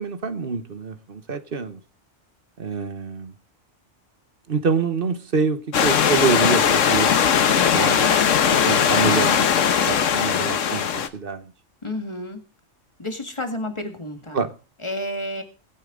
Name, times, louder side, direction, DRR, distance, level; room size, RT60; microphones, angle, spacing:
voice 1, 0.0-1.8 2.6-3.3 4.5-7.1 7.7-8.2 8.6-9.5 9.9-10.9 11.1-11.5 14.3-14.5, right 5 dB, 50° right, 1.3 m, -26 dB
Stream / Liquid, 5.7-11.1, left 8 dB, 85° left, 1.3 m, -19 dB
voice 2, 11.8-12.4 13.0-14.4 14.8-15.4, left 1 dB, 25° left, 2.0 m, -30 dB
21.5 x 9.0 x 3.8 m
omnidirectional pair, 1.3 m